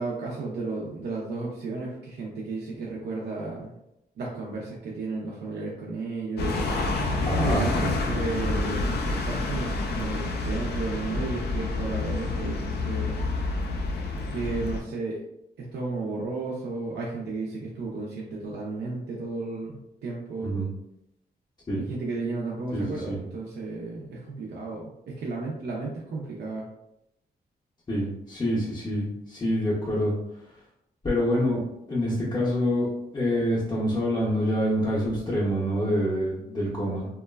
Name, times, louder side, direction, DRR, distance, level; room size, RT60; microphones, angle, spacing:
voice 1, 0.0-3.7 4.2-13.2 14.3-15.3 15.6-20.5 21.7-26.6, right 3 dB, 80° right, -4 dB, 0.5 m, -33 dB
sound 1, 6.4-14.8, left 3 dB, 75° left, 0.4 m, -28 dB
voice 2, 7.2-7.7 20.4-20.7 21.7-21.8 22.7-23.2 27.9-30.1 31.0-31.6 31.9-37.1, equal, 25° left, -7 dB, 0.5 m, -26 dB
2.9 x 2.2 x 2.2 m, 0.84 s
wide cardioid pair, 150°, 17 cm